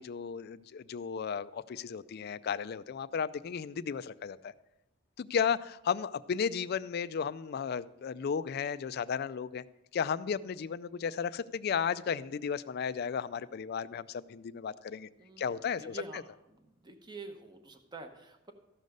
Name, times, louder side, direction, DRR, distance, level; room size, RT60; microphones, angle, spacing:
voice 1, 0.0-4.5 5.2-9.6 9.9-15.1 15.4-16.2, left 6 dB, 50° left, 14 dB, 0.3 m, -34 dB
voice 2, 15.2-16.2 16.5-18.5, right 3 dB, 20° right, 6 dB, 0.9 m, -47 dB
14.0 x 5.3 x 6.4 m, 0.93 s
head